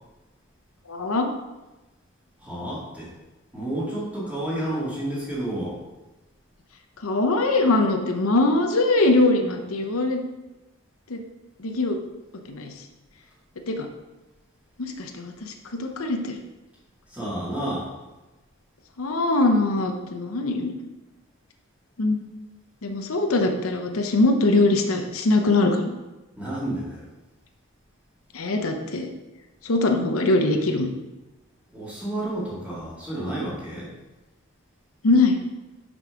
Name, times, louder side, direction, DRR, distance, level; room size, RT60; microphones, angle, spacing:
voice 1, 0.9-1.3 7.0-10.2 11.1-11.2 11.6-12.0 12.5-12.7 13.7-13.9 14.8-16.4 19.0-20.7 22.0-22.2 22.8-25.9 28.3-29.1 29.6-30.9 35.0-35.4, left 2 dB, 85° left, 4 dB, 0.8 m, -22 dB
voice 2, 2.4-3.1 3.5-5.8 17.1-17.9 26.4-27.1 31.7-33.9, right 1 dB, 5° right, -7 dB, 2.1 m, -30 dB
6.1 x 5.4 x 4.6 m, 1.1 s
head